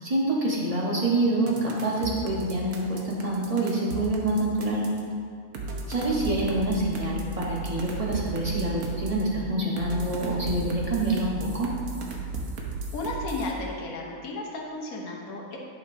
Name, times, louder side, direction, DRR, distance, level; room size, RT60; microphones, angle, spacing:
voice 1, 0.0-4.8 5.9-11.7, right 2 dB, 25° right, -4 dB, 1.1 m, -26 dB
sound 1, 1.5-5.0 5.5-9.2 9.8-13.5, right 3 dB, 70° right, 1.3 m, -35 dB
voice 2, 12.9-15.6, left 2 dB, 75° left, -1 dB, 1.5 m, -33 dB
11.0 x 5.9 x 2.7 m, 2.3 s
omnidirectional pair, 1.6 m